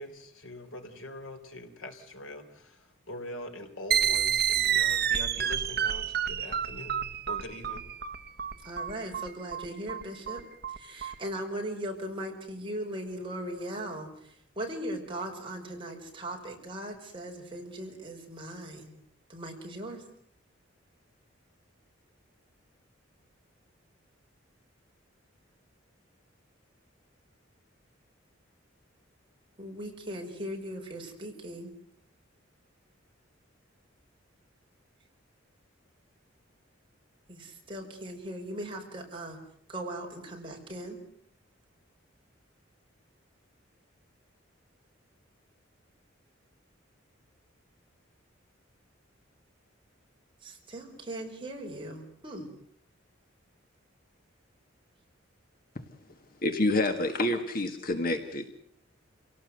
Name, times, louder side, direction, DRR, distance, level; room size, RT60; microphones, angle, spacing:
voice 1, 0.0-7.8, left 1 dB, 80° left, 6 dB, 3.7 m, -43 dB
sound 1, 3.9-11.1, right 9 dB, 50° right, 1.2 m, -29 dB
voice 2, 8.6-10.4 10.7-18.9 19.3-20.0 29.6-31.7 37.3-39.4 39.7-41.0 50.4-52.5, right 1 dB, 25° right, 0 dB, 5.7 m, -39 dB
voice 3, 56.4-58.5, left 2 dB, 45° left, 7 dB, 1.8 m, -28 dB
28.5 x 18.0 x 8.1 m, 0.66 s
head